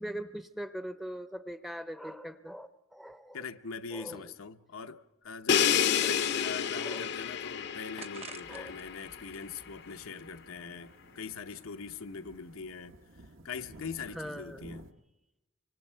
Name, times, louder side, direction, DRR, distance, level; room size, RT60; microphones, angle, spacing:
voice 1, 0.0-3.4 3.9-4.3 6.0-6.2 6.8-7.1 8.5-8.7 14.1-14.7, equal, ahead, 0.6 m, -41 dB
voice 2, 3.3-13.0 13.4-14.9, left 5 dB, 90° left, 0.8 m, -42 dB
Crash cymbal, 5.5-9.3, left 8 dB, 55° left, 0.6 m, -29 dB
sound 1, 6.4-7.3 8.0-8.8 9.2-10.4, right 5 dB, 30° right, 0.9 m, -51 dB
sound 2, 8.4-14.9, right 2 dB, 70° right, 1.2 m, -55 dB
25.0 x 24.5 x 4.5 m
head